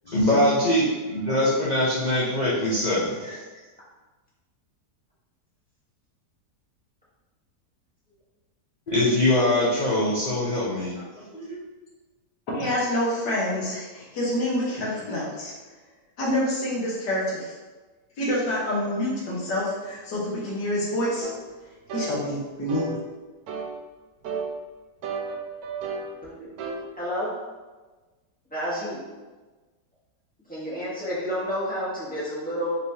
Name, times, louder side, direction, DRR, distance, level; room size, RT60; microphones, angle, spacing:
voice 1, 0.1-3.4 8.9-11.6, left 1 dB, 55° left, -7 dB, 0.5 m, -23 dB
voice 2, 12.5-15.5 16.2-17.5 18.2-21.3 21.9-23.0, left 1 dB, 80° left, -5 dB, 1.8 m, -27 dB
sound 1, 21.2-21.4 21.9-22.1 22.7-22.9 23.5-23.7 24.2-24.5 25.0-26.1 26.6-26.8, right 5 dB, 70° right, 1.0 m, -32 dB
voice 3, 26.9-27.3 28.5-29.0 30.5-32.7, equal, 5° left, -9 dB, 1.1 m, -30 dB
5.1 x 3.2 x 2.7 m, 1.3 s
omnidirectional pair, 1.8 m